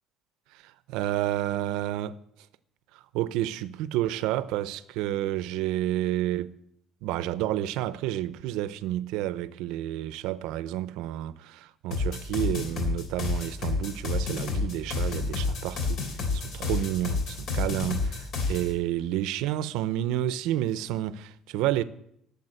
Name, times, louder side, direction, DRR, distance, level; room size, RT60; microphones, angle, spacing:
voice 1, 0.5-2.2 2.9-6.5 7.0-16.0 16.3-21.8, right 13 dB, 85° right, 0.7 m, -30 dB
sound 1, 11.9-18.7, left 4 dB, 55° left, 3.5 m, -29 dB
13.5 x 7.2 x 9.9 m
cardioid pair, 155°, 0 cm